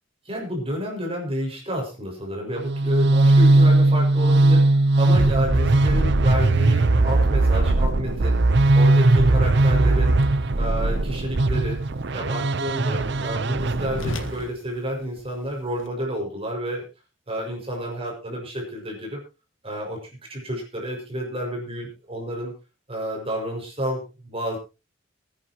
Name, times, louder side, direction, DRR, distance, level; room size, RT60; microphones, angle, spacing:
voice 1, 0.3-8.4 8.7-10.2 10.6-11.8 12.1-16.8 17.3-19.2 19.6-22.5 22.9-24.6, equal, 30° right, 0 dB, 6.0 m, -30 dB
sound 1, 2.6-14.4, right 2 dB, 65° right, 0.8 m, -19 dB
Whoosh swoosh swish, 8.1-15.9, left 2 dB, 80° left, 1.7 m, -42 dB
23.0 x 10.0 x 3.0 m, 0.29 s
head